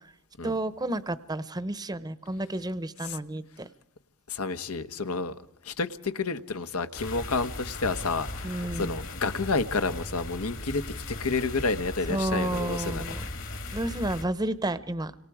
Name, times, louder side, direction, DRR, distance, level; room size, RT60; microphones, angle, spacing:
voice 1, 0.4-3.7 8.4-9.0 12.1-13.2 13.7-15.1, right 1 dB, 20° right, 0.9 m, -31 dB
voice 2, 4.3-5.3 5.6-13.0, left 3 dB, 85° left, 1.2 m, -30 dB
sound 1, 6.9-14.2, left 2 dB, 65° left, 3.0 m, -38 dB
29.5 x 26.5 x 4.9 m
head